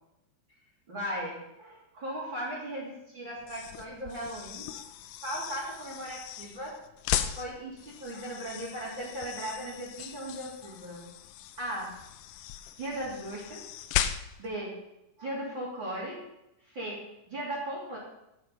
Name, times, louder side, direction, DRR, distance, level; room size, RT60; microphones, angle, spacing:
voice 1, 0.9-4.9 5.2-6.8 7.1-11.1 11.6-11.9 12.8-13.6 14.4-14.8 15.2-16.2 16.6-18.0, right 1 dB, 30° right, -5 dB, 3.1 m, -37 dB
sound 1, 3.4-14.6, left 11 dB, 85° left, 1.9 m, -37 dB
10.5 x 7.8 x 5.4 m, 0.87 s
omnidirectional pair, 4.6 m